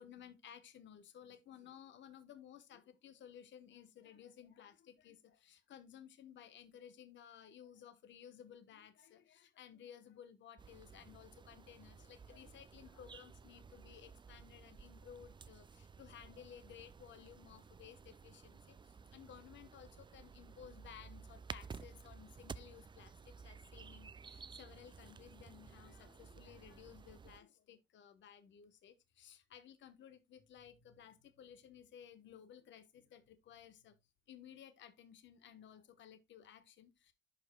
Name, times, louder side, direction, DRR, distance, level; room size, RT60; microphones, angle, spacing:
voice 1, 0.0-18.8 19.1-33.9 34.3-37.1, left 9 dB, 65° left, 1.1 m, -57 dB
sound 1, 10.6-27.4, right 5 dB, 25° right, 0.4 m, -54 dB
11.0 x 5.0 x 2.2 m
cardioid pair, 90°, 20 cm